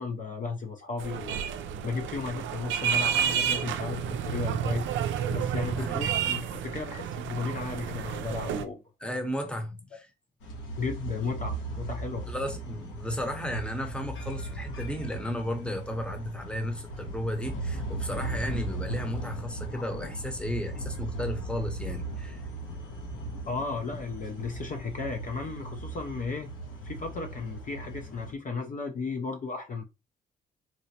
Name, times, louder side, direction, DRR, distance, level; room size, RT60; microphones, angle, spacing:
voice 1, 0.0-1.4 1.8-4.9 5.3-8.8 10.8-12.3 23.5-26.5 26.8-29.8, left 4 dB, 40° left, 0.5 m, -34 dB
sound 1, 1.0-8.6, right 9 dB, 70° right, 0.4 m, -30 dB
voice 2, 5.8-6.2 9.0-10.1 12.3-22.4, left 1 dB, 5° left, 0.8 m, -34 dB
sound 2, 10.4-28.3, right 2 dB, 80° left, 1.1 m, -37 dB
3.9 x 2.1 x 2.8 m
cardioid pair, 90°, 20 cm